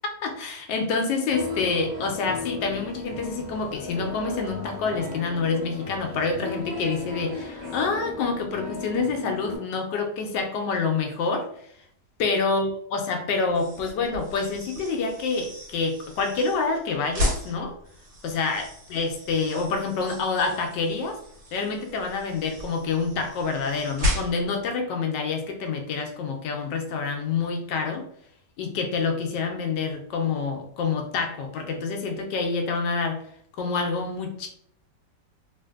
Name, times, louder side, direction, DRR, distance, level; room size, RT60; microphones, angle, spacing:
voice 1, 0.2-11.5 12.2-17.8 18.2-21.2 21.5-28.1 28.6-33.2 33.6-34.5, left 4 dB, 80° left, 4 dB, 1.2 m, -27 dB
sound 1, 1.3-9.6, left 3 dB, 20° right, 1.0 m, -36 dB
sound 2, 13.5-24.6, left 1 dB, 70° right, 1.6 m, -34 dB
3.3 x 2.5 x 2.3 m, 0.64 s
omnidirectional pair, 1.9 m